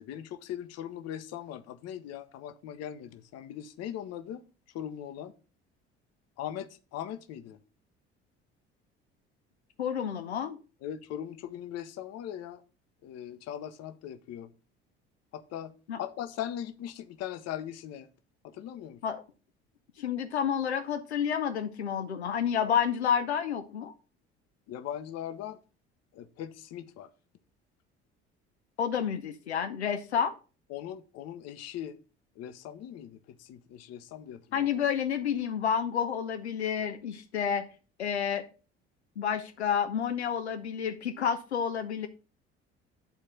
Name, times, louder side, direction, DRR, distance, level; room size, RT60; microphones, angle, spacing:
voice 1, 0.0-4.4 4.7-5.3 6.4-7.6 10.8-12.6 13.0-14.5 15.3-15.7 16.0-18.1 18.4-19.0 24.7-25.6 26.1-27.1 30.7-32.0 32.4-34.7, left 10 dB, 50° left, 0.9 m, -40 dB
voice 2, 9.8-10.6 15.9-16.0 19.0-19.2 20.0-23.9 28.8-30.3 34.5-37.7 38.0-38.4 39.2-42.1, left 8 dB, 80° left, 0.6 m, -30 dB
9.4 x 4.2 x 5.2 m
figure-of-eight pair, 55°, 33 cm